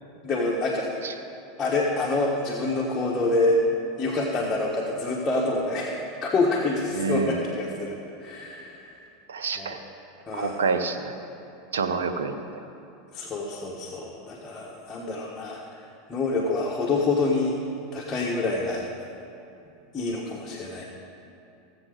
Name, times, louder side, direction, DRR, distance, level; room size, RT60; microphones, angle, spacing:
voice 1, 0.2-1.2 1.6-3.6 4.0-9.0 9.6-9.7 10.3-10.6 13.1-17.6 17.9-18.8 19.9-20.8, left 2 dB, 20° left, -4 dB, 1.5 m, -27 dB
voice 2, 6.9-7.4 9.3-9.8 10.3-11.2 11.7-12.4, right 5 dB, 90° right, 8 dB, 0.7 m, -27 dB
16.0 x 7.8 x 4.0 m, 2.7 s
hypercardioid pair, 105°, 0 cm